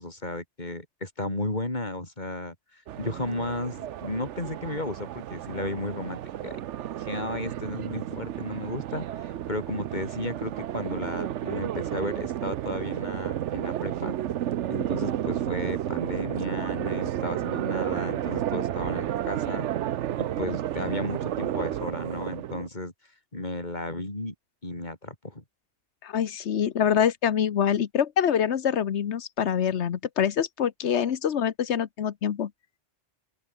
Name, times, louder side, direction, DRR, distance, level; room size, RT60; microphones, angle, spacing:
voice 1, 0.0-6.5 7.0-14.1 14.7-19.7 20.2-22.9 23.3-24.3 24.6-25.4, left 2 dB, 40° left, 4.6 m, -34 dB
sound 1, 2.9-22.7, right 11 dB, 85° right, 1.0 m, -32 dB
voice 2, 26.0-32.5, left 8 dB, 75° left, 1.2 m, -25 dB
open air
omnidirectional pair, 1.2 m